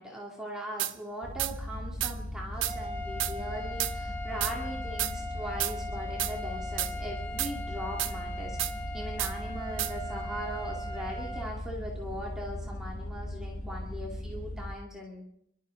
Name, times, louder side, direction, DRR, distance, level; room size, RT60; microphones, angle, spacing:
voice 1, 0.0-15.2, equal, 5° right, -3 dB, 2.3 m, -40 dB
sound 1, 0.8-0.9 1.4-1.5 2.0-2.1 2.6-2.8 3.2-3.3 3.8-3.9 4.4-4.5 5.0-5.1 5.6-5.8 6.2-6.3 6.8-6.9 7.4-7.5 8.0-8.1 8.6-8.7 9.2-9.3 9.8-9.9, right 14 dB, 80° right, 0.6 m, -30 dB
sound 2, 1.2-14.7, left 1 dB, 40° left, 6.3 m, -38 dB
sound 3, 2.5-11.5, left 1 dB, 20° left, 2.3 m, -40 dB
29.0 x 12.5 x 3.9 m, 0.73 s
head